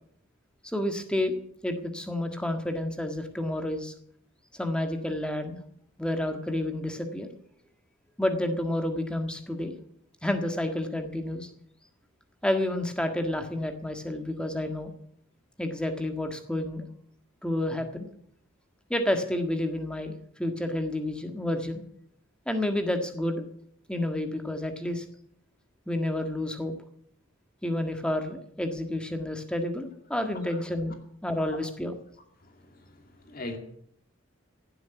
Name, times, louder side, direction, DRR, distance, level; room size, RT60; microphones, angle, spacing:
voice 1, 0.6-1.3 1.6-3.9 4.5-5.6 6.0-7.3 8.2-9.8 10.2-11.5 12.4-14.9 15.6-16.8 17.4-18.1 18.9-21.8 22.5-23.4 23.9-25.0 25.9-26.7 27.6-30.9 31.2-32.0, left 1 dB, 5° left, 1.6 m, -30 dB
voice 2, 32.4-33.0 33.3-33.6, left 2 dB, 45° left, 2.3 m, -40 dB
16.5 x 7.8 x 9.3 m
head